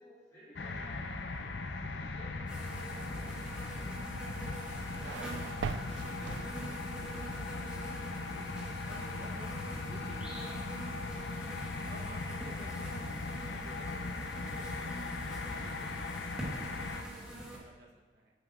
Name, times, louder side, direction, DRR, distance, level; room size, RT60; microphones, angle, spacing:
voice 1, 0.0-1.5 1.8-4.2 12.1-12.4, equal, 20° left, -13 dB, 2.5 m, -56 dB
sound 1, 0.6-17.0, left 3 dB, 75° left, 0.6 m, -39 dB
sound 2, 2.5-17.6, right 1 dB, 5° right, 1.4 m, -45 dB
sound 3, 4.4-7.0, right 6 dB, 80° right, 0.3 m, -42 dB
voice 2, 5.0-8.5 8.8-11.5 11.9-18.3, right 1 dB, 65° right, -1 dB, 1.0 m, -55 dB
9.8 x 8.0 x 2.5 m, 1.2 s
head